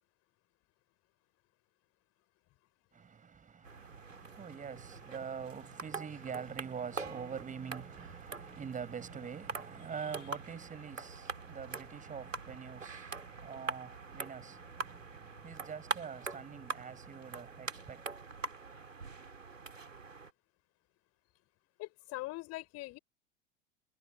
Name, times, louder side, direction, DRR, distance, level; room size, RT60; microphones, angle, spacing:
voice 1, 2.9-18.0, right 6 dB, 20° right, 5.8 m, -45 dB
sound 1, 3.6-20.3, right 4 dB, 80° right, 4.1 m, -44 dB
voice 2, 21.8-23.0, left 20 dB, 40° left, 6.2 m, -42 dB
figure-of-eight pair, 85°, 37 cm